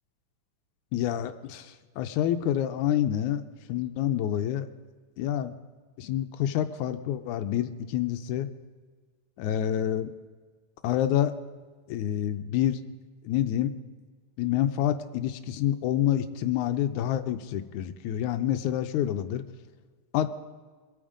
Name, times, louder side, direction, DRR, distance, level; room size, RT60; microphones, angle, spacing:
voice 1, 0.9-3.4 3.7-4.7 5.2-5.5 6.0-8.5 9.4-10.1 10.8-11.3 11.9-12.8 13.2-13.7 14.4-19.4 20.1-20.3, left 11 dB, 80° left, 9 dB, 2.0 m, -27 dB
24.5 x 8.9 x 4.9 m, 1.5 s
omnidirectional pair, 3.6 m